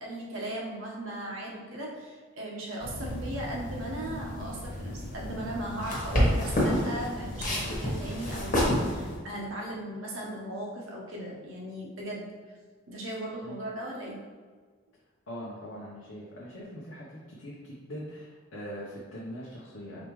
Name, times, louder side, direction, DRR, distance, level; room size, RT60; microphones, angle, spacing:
voice 1, 0.0-12.3 12.9-14.2, right 1 dB, 75° right, -3 dB, 1.1 m, -37 dB
sound 1, 2.8-9.2, equal, 40° left, 1.3 m, -30 dB
voice 2, 15.3-20.1, equal, 70° left, -6 dB, 0.8 m, -42 dB
4.9 x 3.5 x 3.1 m, 1.5 s
head